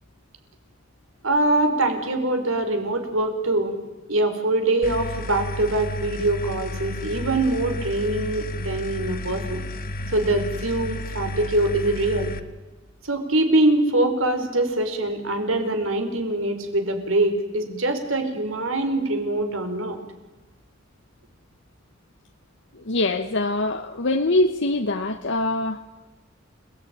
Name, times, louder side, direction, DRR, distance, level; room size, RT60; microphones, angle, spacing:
voice 1, 1.2-3.8 4.1-9.6 10.1-12.3 13.0-20.0, right 2 dB, 85° right, 6 dB, 4.6 m, -23 dB
sound 1, 4.8-12.4, left 1 dB, 45° left, 1.7 m, -32 dB
voice 2, 22.7-25.8, left 2 dB, 65° left, 6 dB, 1.2 m, -23 dB
29.5 x 19.5 x 9.4 m, 1.2 s
head